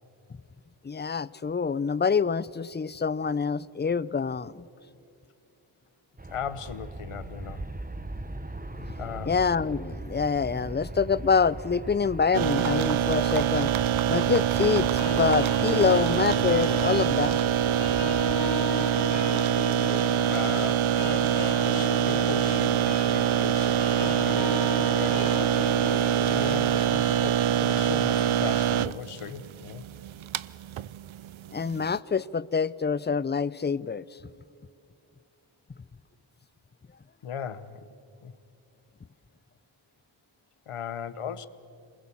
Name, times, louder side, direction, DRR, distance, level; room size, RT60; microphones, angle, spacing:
voice 1, 0.8-4.6 8.8-8.9 9.3-13.7 14.1-17.4 31.5-34.0, left 5 dB, 20° left, 20 dB, 0.5 m, -26 dB
Aircraft, 6.2-18.4, right 2 dB, 15° right, 1.2 m, -40 dB
voice 2, 6.3-7.6 9.0-9.4 20.3-25.6 26.3-29.8 37.2-37.8 38.2-38.3 40.7-41.5, left 8 dB, 85° left, 15 dB, 1.0 m, -38 dB
sound 1, 12.3-32.0, right 10 dB, 70° right, 0.6 m, -25 dB
sound 2, 15.0-27.0, left 4 dB, 50° left, 3.3 m, -37 dB
27.0 x 21.0 x 7.2 m, 2.5 s
cardioid pair, 50°, 50 cm